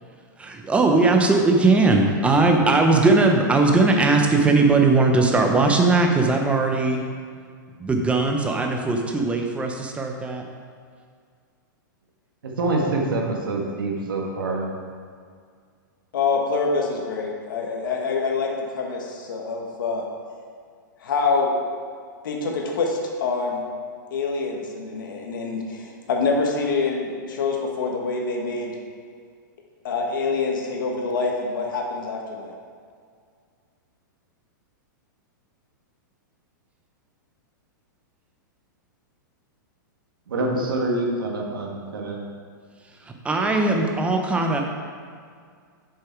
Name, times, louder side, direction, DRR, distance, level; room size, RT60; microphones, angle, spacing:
voice 1, 0.4-7.0 7.8-10.4 43.0-44.6, right 3 dB, 10° right, 3 dB, 1.0 m, -19 dB
voice 2, 12.4-14.7 40.3-42.2, right 2 dB, 90° right, -1 dB, 1.8 m, -26 dB
voice 3, 16.1-20.0 21.0-21.6 22.2-23.6 24.1-28.8 29.8-32.5, left 4 dB, 75° left, 0 dB, 1.8 m, -25 dB
7.7 x 6.7 x 4.6 m, 2.1 s
hypercardioid pair, 130°, 11 cm